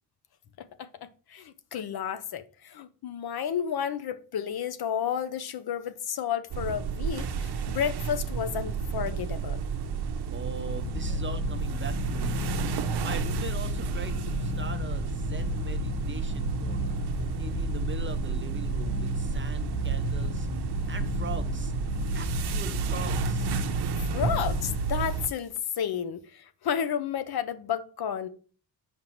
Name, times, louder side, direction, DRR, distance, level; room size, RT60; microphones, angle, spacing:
voice 1, 0.6-9.6 24.0-28.3, left 8 dB, 60° left, 0.6 m, -32 dB
sound 1, 6.5-25.3, right 6 dB, 65° right, 0.7 m, -31 dB
voice 2, 10.3-12.5 13.0-17.1 17.4-20.5 20.9-21.7 22.1-23.6, right 5 dB, 30° right, 0.4 m, -41 dB
sound 2, 10.6-24.8, left 6 dB, 80° left, 1.5 m, -34 dB
7.2 x 5.1 x 3.0 m
wide cardioid pair, 165°, 42 cm